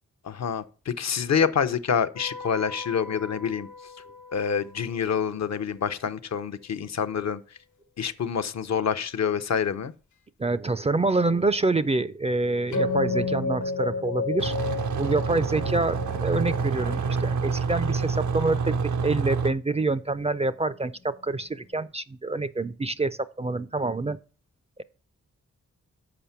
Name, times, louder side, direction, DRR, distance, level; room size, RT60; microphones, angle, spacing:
voice 1, 0.2-3.7 4.3-7.4 8.0-9.9, left 7 dB, 65° left, 0.7 m, -27 dB
sound 1, 2.2-4.8 12.7-21.7, left 3 dB, 90° left, 1.2 m, -34 dB
voice 2, 10.4-14.5 15.0-18.8 19.0-24.2, right 3 dB, 20° right, 0.4 m, -26 dB
sound 2, 14.4-19.5, right 5 dB, 85° right, 0.7 m, -27 dB
6.8 x 5.0 x 5.7 m
wide cardioid pair, 100°, 29 cm